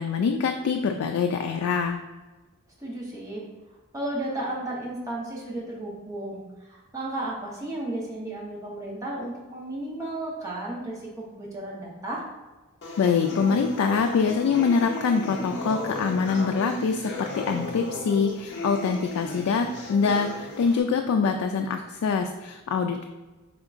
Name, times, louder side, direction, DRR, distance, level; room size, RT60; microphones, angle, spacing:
voice 1, 0.0-2.0 13.0-23.0, left 5 dB, 80° left, 4 dB, 0.3 m, -24 dB
voice 2, 2.8-3.4 3.9-12.2, right 1 dB, 15° right, -5 dB, 0.9 m, -34 dB
sound 1, 12.8-20.8, left 2 dB, 55° left, 0.7 m, -35 dB
5.0 x 3.6 x 2.4 m, 1.2 s
head